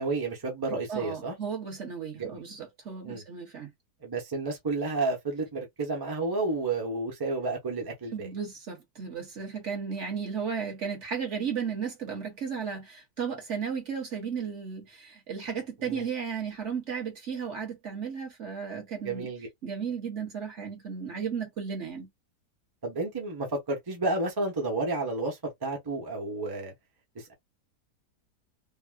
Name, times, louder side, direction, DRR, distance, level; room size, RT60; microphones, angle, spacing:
voice 1, 0.0-1.3 2.2-2.4 3.0-3.2 4.0-8.3 15.8-16.1 19.0-19.5 22.8-26.7 27.1-27.3, right 3 dB, 20° right, 0.7 m, -31 dB
voice 2, 0.7-3.7 8.1-19.3 19.6-22.1, right 6 dB, 50° right, 1.2 m, -34 dB
3.5 x 2.1 x 2.4 m
omnidirectional pair, 1.7 m